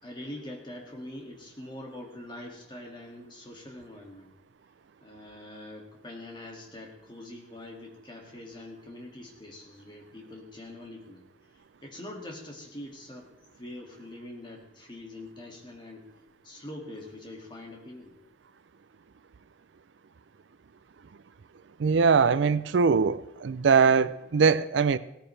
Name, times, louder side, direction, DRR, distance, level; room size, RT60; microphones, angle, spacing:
voice 1, 0.0-4.3 5.0-11.3 11.8-13.3 13.6-16.1 16.4-18.2, left 1 dB, 25° left, 2.1 m, -44 dB
voice 2, 21.8-25.0, right 5 dB, 75° right, 0.4 m, -22 dB
17.0 x 14.0 x 3.3 m
head